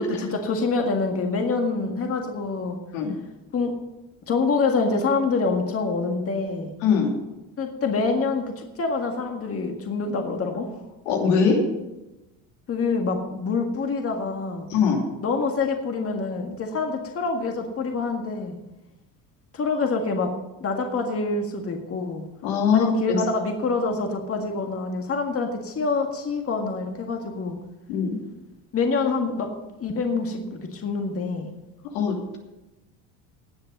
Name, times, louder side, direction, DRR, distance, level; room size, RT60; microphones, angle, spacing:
voice 1, 0.0-2.8 3.5-3.7 4.3-6.7 7.6-10.8 12.7-14.7 15.2-18.6 19.5-20.3 20.6-22.2 22.7-27.6 28.7-29.5 29.8-31.5, left 4 dB, 35° left, 3 dB, 1.8 m, -26 dB
voice 2, 6.8-7.1 11.0-11.6 14.7-15.0 22.4-23.2 27.9-28.2 31.9-32.4, left 6 dB, 80° left, 1 dB, 2.9 m, -21 dB
18.5 x 6.7 x 5.3 m, 1.0 s
supercardioid pair, 95°, 39 cm